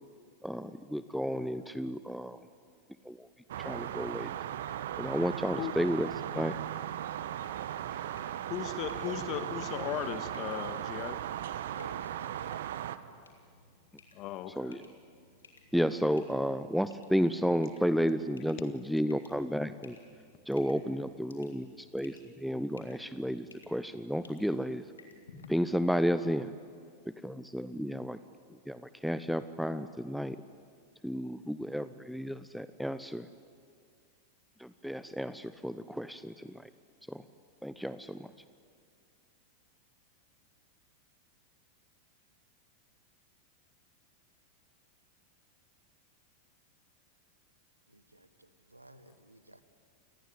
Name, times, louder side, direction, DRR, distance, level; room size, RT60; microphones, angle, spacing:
voice 1, 0.4-2.5 3.0-3.3 3.6-4.4 5.0-6.5 7.9-8.1 14.6-14.9 15.7-20.0 20.5-24.9 25.5-26.5 27.1-28.2 28.5-30.4 31.0-33.3 34.6-36.7 37.1-37.2 37.6-38.3, equal, ahead, 13 dB, 0.7 m, -32 dB
sound 1, 3.5-13.0, right 11 dB, 60° right, 1.1 m, -37 dB
sound 2, 7.3-25.5, left 3 dB, 70° left, 3.4 m, -58 dB
voice 2, 8.5-11.2 14.1-14.8, left 10 dB, 40° left, 10 dB, 1.7 m, -37 dB
voice 3, 11.6-12.5 47.9-49.6, right 1 dB, 85° right, 12 dB, 1.4 m, -53 dB
28.5 x 19.5 x 9.6 m, 2.2 s
figure-of-eight pair, 90°, 0 cm